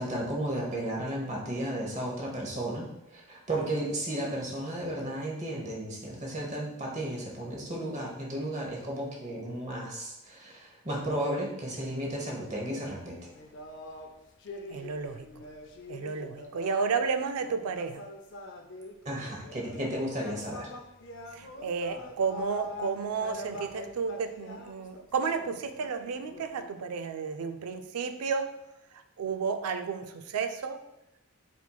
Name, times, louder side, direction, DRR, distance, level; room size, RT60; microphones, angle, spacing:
voice 1, 0.0-2.9 3.1-13.3 19.0-20.7, right 1 dB, 30° right, -2 dB, 1.0 m, -34 dB
sound 1, 13.3-17.1 17.4-19.8 20.1-26.7, left 1 dB, 55° left, 0.5 m, -44 dB
voice 2, 14.7-15.3 15.9-18.1 21.3-28.5 28.9-30.8, right 5 dB, 85° right, 8 dB, 0.4 m, -32 dB
4.3 x 4.2 x 2.3 m, 0.92 s
head